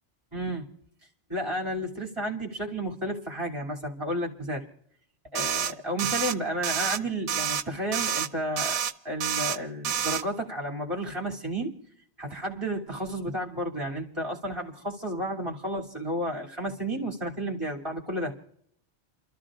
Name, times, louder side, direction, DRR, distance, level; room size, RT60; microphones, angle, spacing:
voice 1, 0.3-0.7 1.3-4.6 5.3-8.8 9.0-11.7 12.2-18.3, right 1 dB, 25° right, -3 dB, 2.7 m, -32 dB
sound 1, 5.3-5.7 6.0-6.3 6.6-7.0 7.3-7.6 7.9-8.3 8.6-8.9 9.2-9.6 9.8-10.2, right 8 dB, 85° right, 1.0 m, -28 dB
29.5 x 14.0 x 2.5 m, 0.67 s
omnidirectional pair, 1.2 m